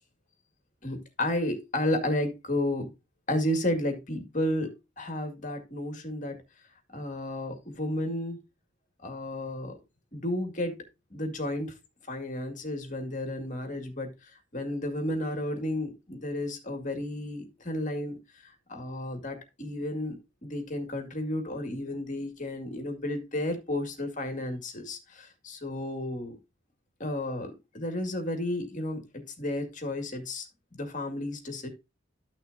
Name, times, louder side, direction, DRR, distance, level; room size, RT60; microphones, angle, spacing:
voice 1, 0.8-2.9 3.3-6.4 6.9-8.4 9.0-9.7 10.1-10.8 11.1-11.7 12.1-14.1 14.5-26.4 27.0-30.5 30.7-31.7, left 1 dB, 40° left, 2.0 m, -32 dB
12.5 x 6.1 x 2.6 m
head